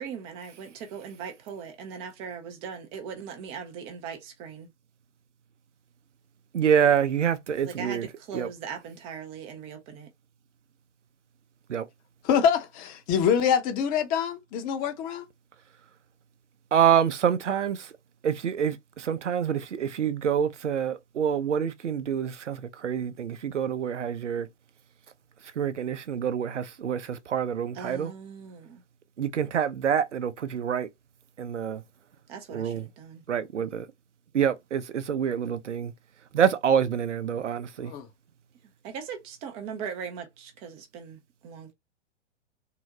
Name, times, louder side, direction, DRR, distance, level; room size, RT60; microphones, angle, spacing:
voice 1, 0.0-4.7 7.6-10.1 27.7-28.8 32.3-33.2 38.8-41.7, right 6 dB, 15° right, 0.4 m, -39 dB
voice 2, 6.5-8.1 8.3-8.5 11.7-11.8 16.7-17.9 18.2-24.5 25.6-28.1 29.2-30.9 31.4-31.8 32.5-32.9 33.3-33.9 34.3-35.9 36.3-37.9, right 8 dB, 75° right, 0.6 m, -26 dB
voice 3, 12.2-15.3 37.8-38.1, left 7 dB, 25° left, 0.6 m, -25 dB
3.7 x 2.1 x 2.7 m
figure-of-eight pair, 105°, 36 cm